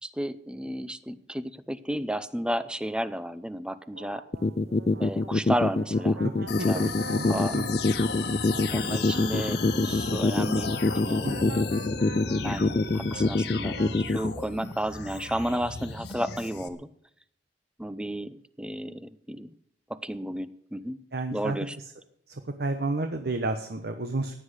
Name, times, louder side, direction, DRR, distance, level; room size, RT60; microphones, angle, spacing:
voice 1, 0.0-4.2 5.0-6.2 6.7-6.9 7.2-7.6 8.7-11.7 12.4-16.9 17.8-19.5 19.9-21.0 21.3-21.8, equal, 5° right, 14 dB, 0.6 m, -33 dB
sound 1, 3.9-14.0, right 3 dB, 85° right, 1.3 m, -45 dB
sound 2, 4.3-14.3, left 3 dB, 35° left, 0.5 m, -24 dB
sound 3, 6.5-16.7, left 4 dB, 70° left, 1.4 m, -35 dB
voice 2, 6.6-7.7 11.2-11.7 21.1-21.6 22.3-24.4, right 2 dB, 60° right, 6 dB, 1.1 m, -31 dB
15.5 x 10.0 x 6.5 m, 0.71 s
head